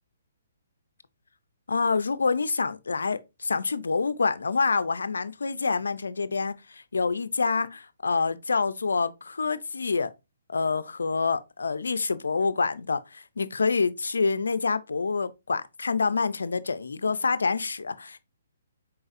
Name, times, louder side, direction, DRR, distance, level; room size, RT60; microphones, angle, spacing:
voice 1, 1.7-10.1 10.5-18.2, left 4 dB, 85° left, 0.4 m, -27 dB
4.1 x 3.9 x 2.5 m
hypercardioid pair, 140°, 0 cm